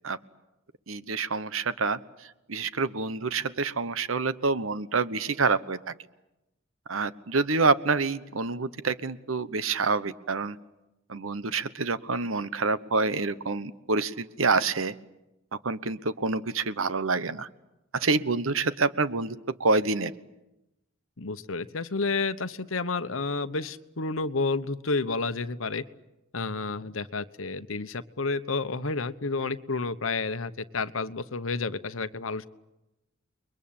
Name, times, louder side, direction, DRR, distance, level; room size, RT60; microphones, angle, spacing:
voice 1, 0.9-2.0 2.5-5.9 6.9-10.6 11.1-14.9 15.6-17.5 17.9-20.1, right 4 dB, 90° right, 14 dB, 1.1 m, -27 dB
voice 2, 21.2-25.8 26.3-32.5, left 3 dB, 80° left, 12 dB, 1.1 m, -30 dB
30.0 x 22.5 x 8.8 m, 0.95 s
head